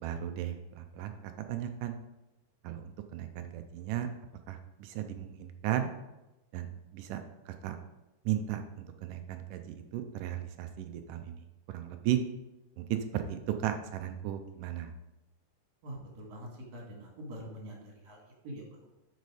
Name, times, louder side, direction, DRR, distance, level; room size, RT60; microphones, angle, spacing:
voice 1, 0.0-1.1 1.5-1.9 2.6-4.1 4.5-5.9 6.5-7.8 8.3-12.2 12.8-14.9, right 11 dB, 80° right, 7 dB, 2.1 m, -35 dB
voice 2, 15.8-18.9, equal, 55° right, -1 dB, 3.2 m, -45 dB
8.2 x 6.4 x 4.9 m, 1.0 s
omnidirectional pair, 4.0 m